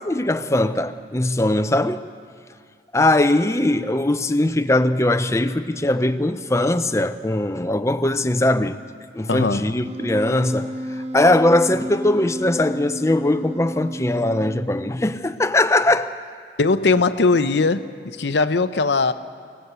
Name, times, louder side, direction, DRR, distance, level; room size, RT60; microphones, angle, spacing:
voice 1, 0.0-2.0 2.9-8.8 9.1-10.7 11.1-16.1, left 1 dB, 15° left, 0.6 m, -20 dB
voice 2, 9.3-9.8 16.6-17.8 18.2-19.1, left 3 dB, 80° left, 0.7 m, -19 dB
Wind instrument woodwind instrument, 9.8-15.3, equal, 35° right, 1.4 m, -32 dB
25.0 x 17.0 x 8.1 m
head